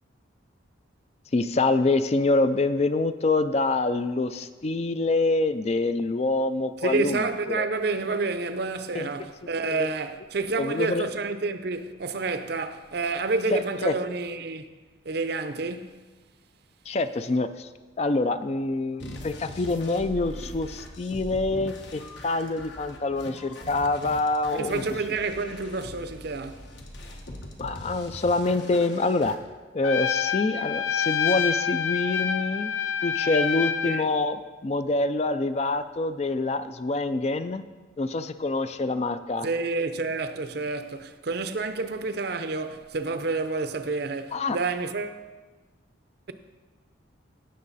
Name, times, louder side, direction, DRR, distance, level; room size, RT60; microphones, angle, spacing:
voice 1, 1.3-7.7 8.9-9.1 9.7-9.9 10.6-11.1 13.5-14.0 16.9-17.7 18.0-24.8 27.6-29.4 29.7-32.7 33.0-37.7 38.0-39.5 44.3-44.6, left 2 dB, 35° left, 0.4 m, -26 dB
voice 2, 6.8-14.7 15.0-16.0 24.5-26.7 33.8-34.1 39.4-45.2, right 3 dB, 55° right, 0.6 m, -29 dB
sound 1, 19.0-29.4, left 1 dB, 60° left, 1.3 m, -41 dB
Trumpet, 29.8-34.1, left 7 dB, 90° left, 0.5 m, -27 dB
17.0 x 6.5 x 4.1 m
head